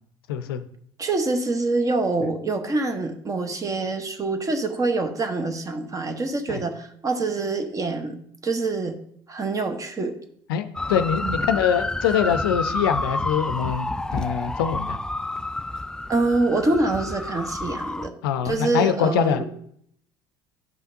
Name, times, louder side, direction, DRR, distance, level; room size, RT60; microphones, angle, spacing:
voice 1, 0.3-0.6 6.5-6.6 10.5-13.9 14.1-15.0 18.2-19.4, left 9 dB, 75° left, 11 dB, 0.5 m, -23 dB
voice 2, 1.0-8.2 8.4-9.0 9.3-10.1 11.2-11.3 16.1-18.1 18.4-19.4, right 3 dB, 25° right, 7 dB, 1.0 m, -25 dB
sound 1, 10.8-18.1, left 2 dB, 5° left, 0.3 m, -29 dB
10.5 x 5.6 x 2.7 m, 0.67 s
hypercardioid pair, 65°, 12 cm